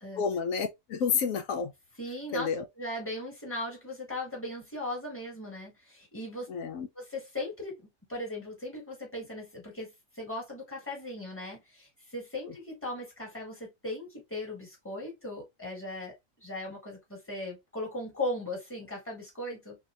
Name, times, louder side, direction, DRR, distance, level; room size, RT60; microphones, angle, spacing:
voice 1, 0.1-1.7 2.3-2.7 6.5-6.9, left 6 dB, 85° left, 1.1 m, -30 dB
voice 2, 2.0-2.5 2.8-6.5 6.9-7.8 8.1-16.1 16.4-19.8, left 1 dB, 10° left, 1.6 m, -38 dB
3.5 x 2.9 x 2.5 m
omnidirectional pair, 1.4 m